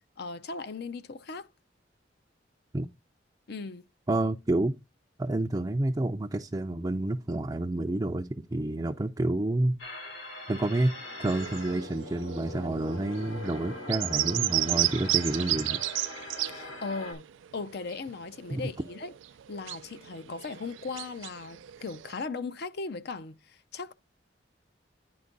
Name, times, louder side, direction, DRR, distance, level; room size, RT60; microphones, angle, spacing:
voice 1, 0.2-1.5 3.5-3.8 16.4-17.3 17.5-19.1 19.5-23.9, left 4 dB, 60° left, 0.5 m, -38 dB
voice 2, 4.1-4.7 5.2-9.8 10.5-15.8 18.5-18.7, right 2 dB, 20° right, 0.4 m, -29 dB
sound 1, 9.8-17.1, left 2 dB, 85° left, 3.3 m, -42 dB
sound 2, 11.3-16.7 17.0-22.3, right 17 dB, 90° right, 0.3 m, -33 dB
9.6 x 4.4 x 3.8 m
head